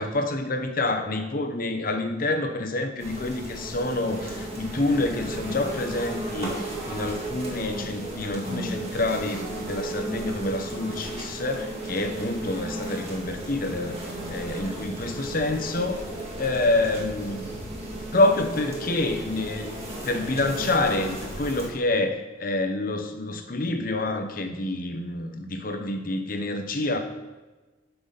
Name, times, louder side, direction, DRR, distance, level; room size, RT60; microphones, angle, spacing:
voice 1, 0.0-14.0 14.3-16.0 16.4-17.5 18.1-27.0, left 2 dB, 50° left, 6 dB, 0.9 m, -27 dB
sound 1, 3.0-21.7, right 1 dB, 35° right, 2.0 m, -35 dB
11.5 x 5.8 x 4.1 m, 1.2 s
head